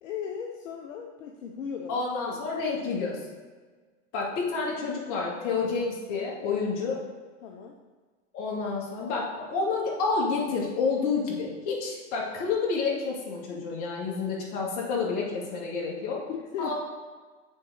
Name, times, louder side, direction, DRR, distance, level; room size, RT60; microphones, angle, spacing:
voice 1, 0.0-2.5 4.7-4.9 7.4-7.8 16.3-16.7, left 7 dB, 75° left, 1 dB, 0.9 m, -37 dB
voice 2, 1.9-3.2 4.1-7.0 8.3-16.2 16.6-16.7, left 4 dB, 50° left, -3 dB, 2.5 m, -29 dB
6.9 x 4.0 x 6.5 m, 1.4 s
hypercardioid pair, 110°, 38 cm